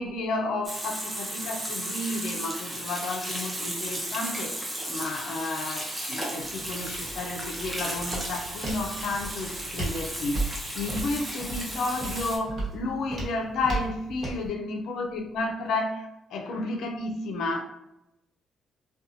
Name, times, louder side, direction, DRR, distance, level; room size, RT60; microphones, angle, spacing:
voice 1, 0.0-17.6, left 2 dB, 75° left, 3 dB, 0.4 m, -32 dB
Water tap faucet / Sink (filling or washing), 0.6-12.4, right 1 dB, 15° right, 0.6 m, -35 dB
Walk footsteps, 6.4-14.5, right 2 dB, 50° right, 1.1 m, -36 dB
2.7 x 2.2 x 2.6 m, 0.89 s
cardioid pair, 90°, 0 cm